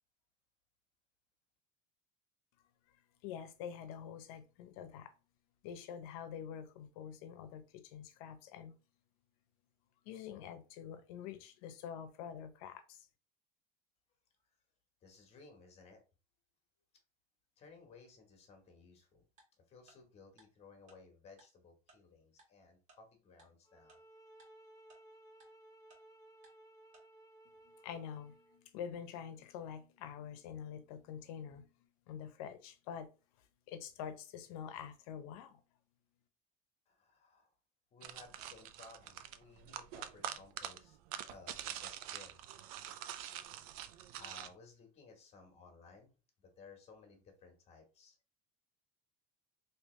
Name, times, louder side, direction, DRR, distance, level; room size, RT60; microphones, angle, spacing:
voice 1, 3.2-5.1 5.6-8.7 10.0-13.1 27.8-31.7 32.1-33.1 33.7-35.6, left 8 dB, 85° left, 0.7 m, -46 dB
voice 2, 15.0-16.0 17.6-19.2 19.7-24.0 36.9-37.5 37.9-41.0 41.2-42.4 43.1-43.2 44.2-48.2, left 4 dB, 35° left, 1.3 m, -59 dB
Tick-tock, 19.4-19.5 19.9-20.0 20.4-20.5 20.9-21.0 21.4-21.5 21.9-22.0 22.4-22.5 22.9-23.0 23.4-23.5 23.9-24.0 24.4-24.5 24.9-25.0 25.4-25.5 25.9-26.0 26.4-26.5 26.9-27.0, right 3 dB, 40° right, 1.7 m, -63 dB
sound 1, 23.7-28.6, right 1 dB, 20° left, 0.8 m, -60 dB
sound 2, 38.0-44.5, right 11 dB, 90° right, 0.4 m, -45 dB
3.4 x 2.9 x 3.1 m
cardioid pair, 135°, 18 cm